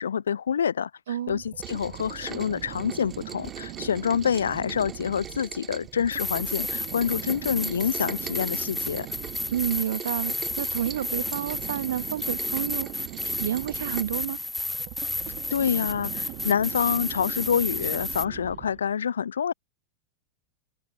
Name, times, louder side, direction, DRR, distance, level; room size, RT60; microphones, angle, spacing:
voice 1, 0.0-9.1 15.5-19.5, left 7 dB, 70° left, 0.5 m, -27 dB
voice 2, 1.1-1.4 9.5-14.4, right 10 dB, 60° right, 1.8 m, -30 dB
sound 1, 1.3-18.9, right 27 dB, 40° right, 0.8 m, -41 dB
Rain, 1.6-14.0, right 7 dB, 20° right, 2.6 m, -43 dB
sound 2, 6.1-18.3, left 2 dB, 5° left, 0.8 m, -32 dB
figure-of-eight pair, 90°, 0 cm